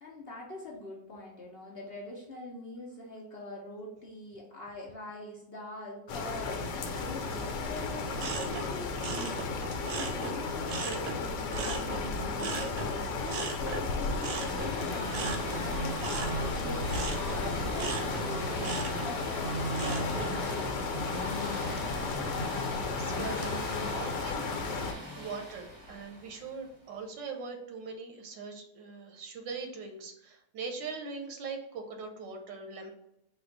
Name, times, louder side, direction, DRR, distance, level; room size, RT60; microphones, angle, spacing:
voice 1, 0.0-21.2, left 1 dB, 65° left, -2 dB, 0.6 m, -43 dB
sound 1, 6.1-24.9, left 4 dB, 80° left, 1.3 m, -34 dB
sound 2, 8.2-11.2 11.5-20.4 20.8-21.2, right 4 dB, 65° right, 1.0 m, -38 dB
sound 3, 13.7-26.6, right 1 dB, 15° right, 0.8 m, -39 dB
voice 2, 22.6-24.4 24.9-32.9, right 4 dB, 90° right, 4 dB, 1.4 m, -41 dB
4.2 x 2.3 x 3.8 m, 0.81 s
omnidirectional pair, 1.9 m